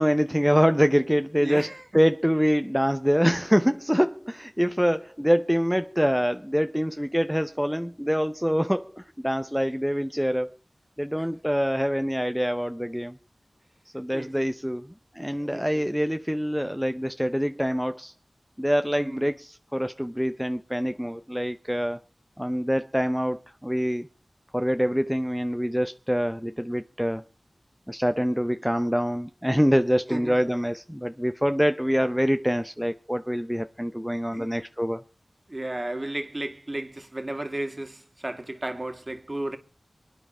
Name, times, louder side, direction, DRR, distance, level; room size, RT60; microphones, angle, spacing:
voice 1, 0.0-1.7 1.9-10.5 11.0-13.2 13.9-18.1 18.6-22.0 22.4-24.1 24.5-27.2 27.9-35.0, equal, ahead, 0.7 m, -25 dB
voice 2, 1.4-1.8 11.2-11.3 14.1-14.5 15.4-15.8 19.0-19.3 30.1-30.5 34.3-34.5 35.5-39.6, right 1 dB, 35° right, 2.1 m, -34 dB
24.5 x 9.8 x 4.4 m
wide cardioid pair, 50°, 0 cm